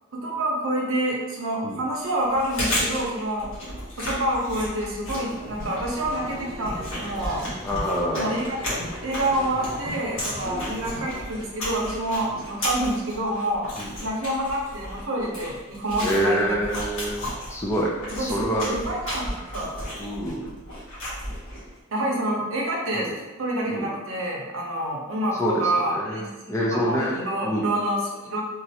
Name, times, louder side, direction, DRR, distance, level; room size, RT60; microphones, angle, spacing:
voice 1, 0.1-3.5 4.0-7.4 8.1-8.6 9.0-13.7 14.0-16.6 18.2-19.7 21.9-23.1 23.4-28.4, right 1 dB, 65° right, -2 dB, 0.7 m, -27 dB
Chewing mastication, 2.2-21.7, equal, 65° left, 1.2 m, -34 dB
sound 1, 5.0-11.2, equal, 20° right, 0.8 m, -39 dB
voice 2, 7.6-8.4 10.4-10.7 12.3-12.4 13.8-13.9 16.0-17.2 17.5-18.8 20.0-20.5 22.9-23.1 23.7-23.9 25.4-26.2 26.5-27.2 27.4-27.7, equal, 15° left, -3 dB, 0.3 m, -26 dB
3.1 x 2.4 x 2.7 m, 1.2 s
head